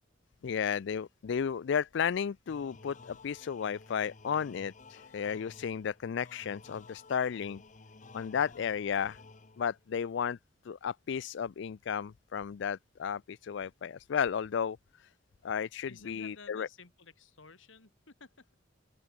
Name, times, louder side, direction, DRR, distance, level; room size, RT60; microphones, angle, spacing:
voice 1, 0.4-7.6 8.1-9.2 9.6-10.4 10.6-15.1 15.4-16.7, left 7 dB, 65° left, 0.4 m, -33 dB
sound 1, 2.5-9.9, left 3 dB, 40° left, 1.1 m, -54 dB
voice 2, 15.9-18.5, left 4 dB, 80° left, 2.3 m, -53 dB
open air
head